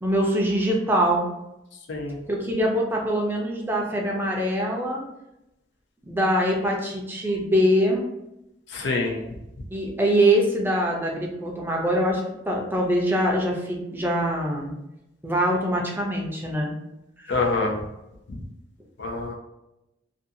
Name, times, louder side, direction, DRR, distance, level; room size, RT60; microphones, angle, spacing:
voice 1, 0.0-1.3 2.3-5.0 6.1-8.0 9.7-14.7 15.2-16.7 17.2-17.5, equal, 10° right, -1 dB, 0.5 m, -23 dB
voice 2, 8.7-9.2 17.3-17.7 19.0-19.3, left 3 dB, 80° left, 0 dB, 0.6 m, -25 dB
2.6 x 2.3 x 2.6 m, 0.89 s
head